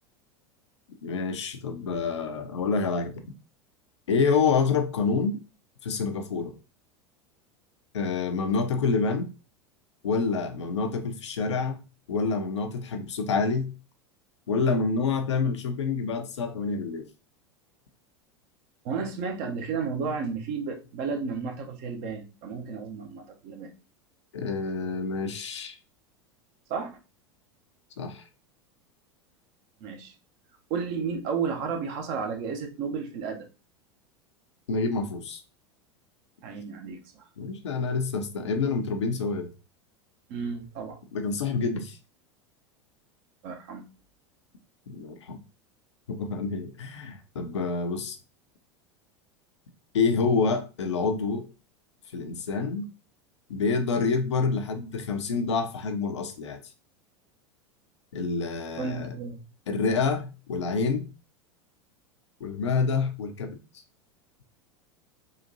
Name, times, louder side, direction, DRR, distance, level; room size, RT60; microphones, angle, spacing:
voice 1, 1.0-3.2 4.1-5.4 5.8-6.5 7.9-9.3 10.0-13.7 14.5-17.1 24.3-25.7 28.0-28.2 34.7-35.4 37.4-39.5 41.1-42.0 44.9-45.4 46.1-48.2 49.9-51.5 52.1-52.9 53.5-56.6 58.1-59.1 59.7-61.1 62.4-63.6, left 4 dB, 75° left, 0.6 m, -27 dB
voice 2, 18.8-23.7 26.7-26.9 29.8-30.1 30.7-33.5 36.4-37.3 40.3-41.0 43.4-43.8 58.8-59.4, right 5 dB, 50° right, 0.8 m, -32 dB
3.8 x 2.5 x 2.6 m
figure-of-eight pair, 85°, 15 cm